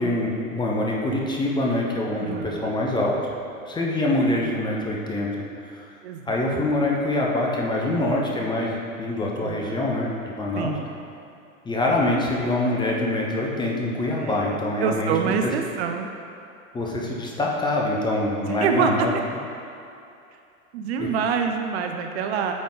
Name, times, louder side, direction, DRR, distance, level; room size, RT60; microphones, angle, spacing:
voice 1, 0.0-3.2 3.7-5.3 5.7-5.9 6.3-10.7 11.6-15.3 16.7-19.1 21.0-21.1, left 1 dB, 10° left, -2 dB, 0.7 m, -25 dB
voice 2, 2.1-2.7 4.4-4.6 6.0-6.6 9.3-9.9 10.6-10.8 14.2-16.1 18.5-19.1 20.7-22.5, right 7 dB, 50° right, 4 dB, 0.5 m, -27 dB
8.6 x 3.7 x 3.7 m, 2.6 s
figure-of-eight pair, 95°, 41 cm